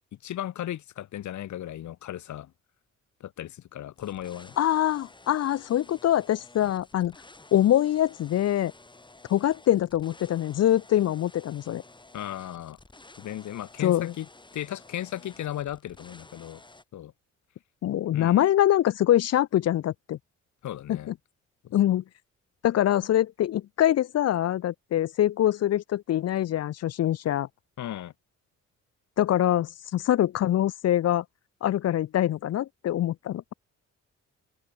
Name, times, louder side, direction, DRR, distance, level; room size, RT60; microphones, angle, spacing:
voice 1, 0.2-2.5 3.2-4.5 6.6-6.7 12.1-12.8 13.2-14.3 14.5-16.6 16.9-17.1 18.1-18.4 20.6-21.1 21.6-21.8 27.8-28.1, left 12 dB, 75° left, 2.9 m, -36 dB
sound 1, 4.0-16.8, left 2 dB, 15° left, 3.6 m, -52 dB
voice 2, 4.6-7.1 7.5-8.7 9.3-11.8 13.8-14.1 17.8-20.2 20.9-21.1 21.7-22.0 22.6-27.5 29.2-31.2 31.6-33.5, left 12 dB, 55° left, 0.6 m, -24 dB
open air
cardioid pair, 90°, 30 cm